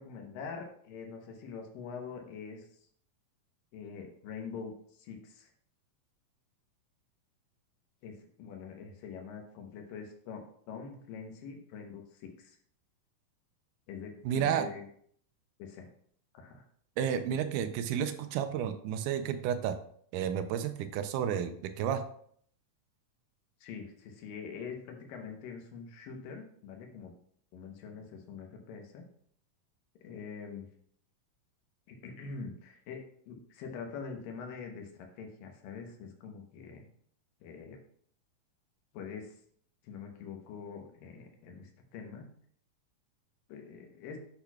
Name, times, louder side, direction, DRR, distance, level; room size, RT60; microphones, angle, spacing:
voice 1, 0.0-2.7 3.7-5.5 8.0-12.6 13.9-14.9 15.6-15.9 16.3-16.6 23.6-27.1 27.5-29.0 30.0-30.7 31.9-36.9 37.4-37.8 38.9-39.4 39.8-42.3 43.5-44.2, left 5 dB, 85° left, 3 dB, 2.7 m, -44 dB
voice 2, 14.3-14.7 17.0-19.8 20.1-22.0, right 9 dB, 80° right, 9 dB, 2.0 m, -31 dB
8.6 x 5.8 x 2.3 m, 0.62 s
omnidirectional pair, 3.9 m